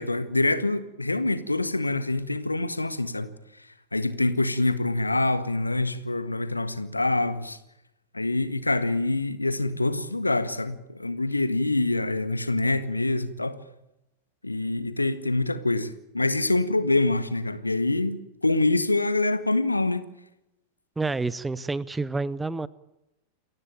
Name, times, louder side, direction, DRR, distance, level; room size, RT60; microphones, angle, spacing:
voice 1, 0.0-3.3 3.9-7.6 8.1-13.6 14.4-20.1, left 2 dB, 85° left, 1.7 m, -25 dB
voice 2, 21.0-22.7, right 3 dB, 10° right, 0.8 m, -28 dB
28.5 x 15.0 x 9.0 m
figure-of-eight pair, 90°, 0 cm